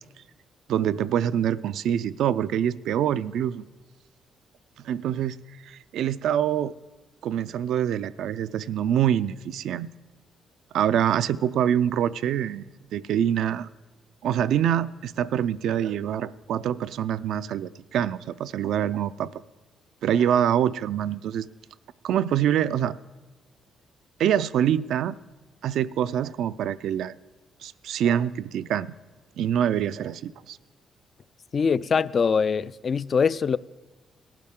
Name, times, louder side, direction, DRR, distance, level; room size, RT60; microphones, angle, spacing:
voice 1, 0.7-3.7 4.8-5.4 5.6-6.7 7.2-9.9 10.7-12.7 12.9-13.7 14.2-19.3 20.0-21.5 22.0-23.0 24.2-25.2 25.6-27.2 27.6-28.9 29.4-30.6, right 10 dB, 75° right, 0.4 m, -25 dB
voice 2, 31.5-33.6, left 6 dB, 45° left, 0.3 m, -23 dB
18.0 x 12.0 x 3.7 m
cardioid pair, 90°, 0 cm